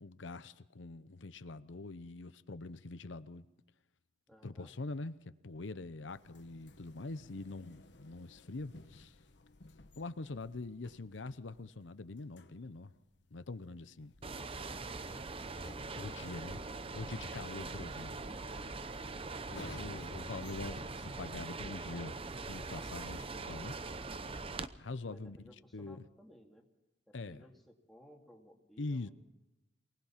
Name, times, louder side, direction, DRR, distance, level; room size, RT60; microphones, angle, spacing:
voice 1, 0.0-3.5 4.4-5.2 5.4-9.2 10.0-12.9 13.3-14.1 15.9-16.6 16.9-18.1 19.5-22.2 22.4-23.7 24.8-25.4 25.7-26.1 27.1-27.5 28.8-29.1, left 3 dB, 90° left, 0.8 m, -44 dB
voice 2, 4.3-4.7 16.1-16.3 25.0-26.7 27.1-29.1, equal, ahead, 2.5 m, -59 dB
sound 1, 6.1-23.1, left 2 dB, 65° left, 1.2 m, -56 dB
sound 2, 14.2-24.7, right 3 dB, 30° right, 0.8 m, -42 dB
23.5 x 19.5 x 5.9 m
head